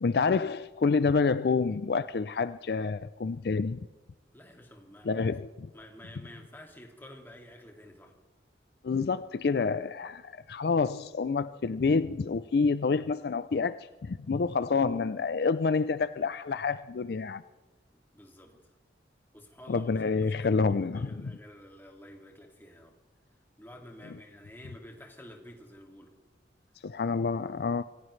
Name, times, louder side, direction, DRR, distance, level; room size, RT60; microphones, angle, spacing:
voice 1, 0.0-3.8 5.0-5.7 8.8-17.4 19.7-21.3 26.8-27.8, left 4 dB, 60° left, 0.4 m, -28 dB
voice 2, 4.3-5.4 5.7-8.2 17.9-18.6 19.3-22.9 23.6-26.1, left 1 dB, 10° left, 2.2 m, -50 dB
26.5 x 16.0 x 3.2 m
head